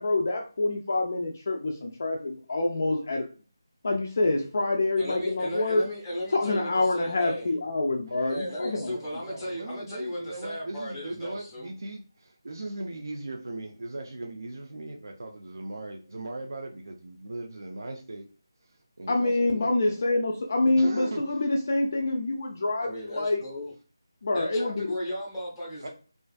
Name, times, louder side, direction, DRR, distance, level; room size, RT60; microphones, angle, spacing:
voice 1, 0.0-3.3 3.8-5.9 6.3-8.9 19.1-23.4 24.2-24.9, left 2 dB, 35° left, 1 dB, 0.3 m, -26 dB
voice 2, 5.0-7.5 8.3-11.7 22.8-23.7 24.3-25.9, equal, 5° left, -6 dB, 0.7 m, -35 dB
voice 3, 8.1-18.3 18.7-20.0 20.8-21.4 25.8-25.9, right 2 dB, 60° right, 3 dB, 0.4 m, -39 dB
2.5 x 2.3 x 2.4 m, 0.37 s
figure-of-eight pair, 175°, 2 cm